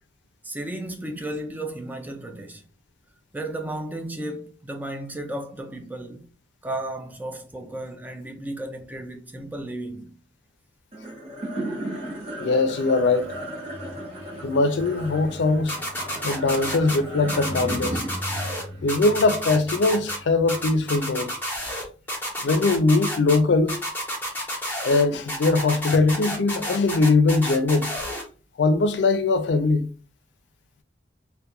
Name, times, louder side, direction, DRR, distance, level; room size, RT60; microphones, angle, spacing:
voice 1, 0.4-2.7 3.3-6.2 6.6-10.2, right 1 dB, 10° right, 0.3 m, -34 dB
sound 1, 10.9-21.4, right 1 dB, 35° right, 0.8 m, -35 dB
voice 2, 12.4-13.3 14.4-15.8 16.2-18.0 18.8-21.3 22.4-23.8 24.8-27.9 28.6-29.9, left 3 dB, 75° left, 0.4 m, -21 dB
sound 2, 15.7-17.0 17.3-18.6 18.9-20.2 20.5-21.8 22.1-23.4 23.7-25.0 25.3-28.2, equal, 10° left, 0.8 m, -30 dB
2.3 x 2.2 x 2.8 m
head